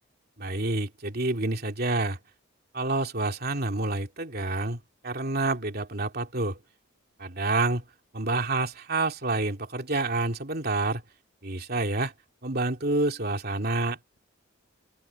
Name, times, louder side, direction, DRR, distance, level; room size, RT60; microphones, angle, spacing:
voice 1, 0.4-2.2 2.7-6.6 7.2-7.8 8.1-11.0 11.4-12.1 12.4-14.2, right 2 dB, 50° right, 2.8 m, -28 dB
open air
head